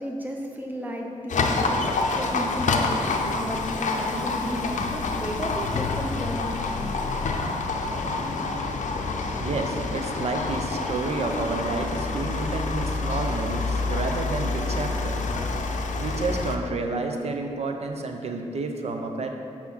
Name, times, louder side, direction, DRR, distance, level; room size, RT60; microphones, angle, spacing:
voice 1, 0.0-7.4 7.9-8.2, equal, 15° right, 0 dB, 0.7 m, -34 dB
Livestock farm animals working animals, 1.3-16.6, left 3 dB, 75° left, 0.5 m, -27 dB
voice 2, 9.3-15.3 16.0-19.3, right 3 dB, 55° right, 4 dB, 0.6 m, -30 dB
5.9 x 4.3 x 6.1 m, 2.5 s
wide cardioid pair, 160°, 13 cm